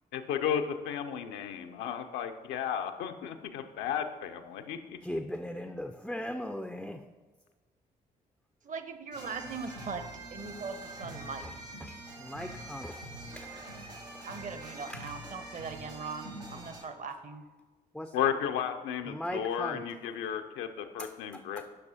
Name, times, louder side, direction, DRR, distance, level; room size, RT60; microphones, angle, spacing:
voice 1, 0.1-5.0 18.1-21.6, left 8 dB, 60° left, 7 dB, 0.6 m, -33 dB
voice 2, 5.0-7.0 11.4-11.5 11.8-13.0 13.4-13.5 14.9-15.0 17.9-18.1 19.1-19.8 21.0-21.6, left 1 dB, ahead, 7 dB, 0.4 m, -38 dB
voice 3, 8.6-11.5 14.3-17.5, right 5 dB, 40° right, 9 dB, 0.8 m, -40 dB
sound 1, 9.1-16.8, right 1 dB, 85° right, 1.0 m, -44 dB
10.0 x 5.9 x 2.8 m, 1.3 s
figure-of-eight pair, 40°, 21 cm